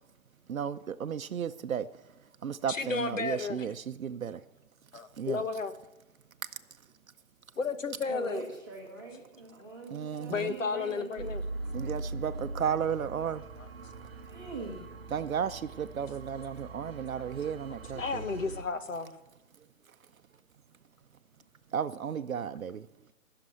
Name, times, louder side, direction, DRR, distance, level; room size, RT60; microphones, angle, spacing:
voice 1, 0.5-1.9 2.4-4.4 5.1-5.4 9.9-10.6 11.7-13.4 14.3-14.4 15.1-18.2 21.7-22.9, right 8 dB, 75° right, 10 dB, 0.7 m, -34 dB
voice 2, 2.7-3.7 4.9-5.7 7.6-8.5 10.3-11.4 17.9-19.1, left 4 dB, 65° left, 10 dB, 1.5 m, -32 dB
voice 3, 8.1-11.3 14.2-14.9, right 3 dB, 15° right, -4 dB, 1.1 m, -43 dB
sound 1, 11.2-18.6, right 2 dB, 45° right, 0.9 m, -41 dB
19.0 x 6.8 x 6.4 m, 0.98 s
hypercardioid pair, 180°, 41 cm